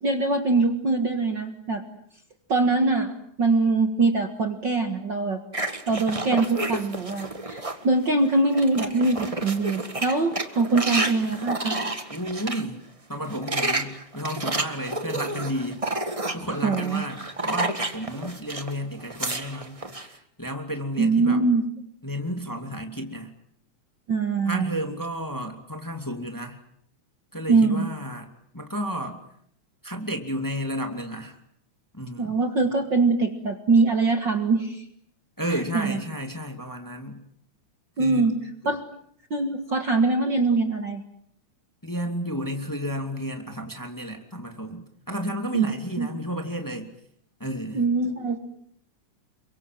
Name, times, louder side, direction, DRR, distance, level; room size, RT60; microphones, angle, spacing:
voice 1, 0.0-1.8 2.5-3.1 3.4-5.4 5.9-11.8 16.5-17.0 21.0-21.6 24.1-24.8 27.5-27.9 32.2-34.8 35.5-36.0 38.0-38.3 38.7-38.9 39.3-41.0 45.5-45.7 46.0-46.1 47.7-48.4, right 3 dB, 40° right, 6 dB, 2.1 m, -23 dB
sound 1, 5.5-7.8 8.3-12.6 13.2-18.7 19.0-20.1, right 2 dB, 20° right, 0.9 m, -30 dB
voice 2, 12.1-12.8 13.1-15.8 16.3-21.5 22.0-23.3 24.5-26.6 27.3-28.3 28.5-29.2 29.8-31.4 31.9-32.3 35.4-37.2 38.0-38.2 38.6-38.7 41.8-46.9 47.4-47.8, equal, 5° left, 4 dB, 2.4 m, -32 dB
29.0 x 24.0 x 7.7 m, 0.67 s
omnidirectional pair, 3.5 m